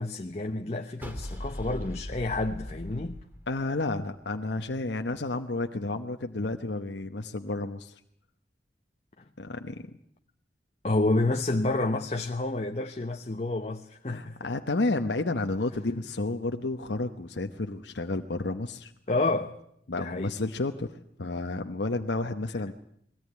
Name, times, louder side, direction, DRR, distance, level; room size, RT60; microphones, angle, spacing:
voice 1, 0.0-3.2 10.8-14.4 19.1-19.5 20.0-20.3, left 2 dB, 35° left, 0.9 m, -29 dB
sound 1, 1.0-4.2, equal, 10° right, 2.9 m, -39 dB
voice 2, 3.5-7.9 9.4-9.8 14.1-18.9 19.9-22.7, left 2 dB, 85° left, 1.0 m, -31 dB
21.5 x 17.5 x 9.6 m
head